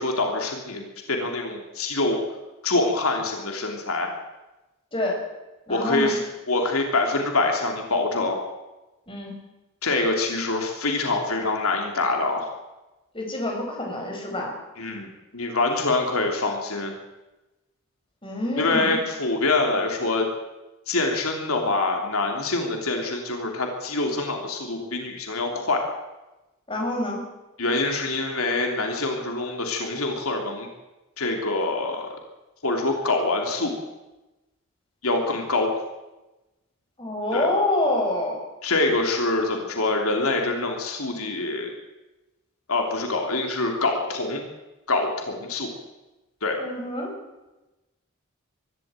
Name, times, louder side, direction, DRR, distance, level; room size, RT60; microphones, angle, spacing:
voice 1, 0.0-2.2 2.6-4.1 5.7-6.2 6.5-8.4 9.8-12.5 14.8-15.1 15.3-16.9 18.6-20.3 20.9-25.8 27.6-30.7 31.2-32.1 32.6-33.7 35.0-35.7 37.3-37.5 38.6-41.7 42.7-44.4 44.9-45.7 46.4-46.6, left 2 dB, 80° left, 2 dB, 3.0 m, -25 dB
voice 2, 4.9-5.2 5.7-6.2 9.1-9.4 13.1-14.5 18.2-19.0 26.7-27.2 37.0-38.4 46.6-47.1, left 1 dB, 25° left, 0 dB, 5.8 m, -27 dB
23.0 x 12.5 x 9.0 m, 1.1 s
head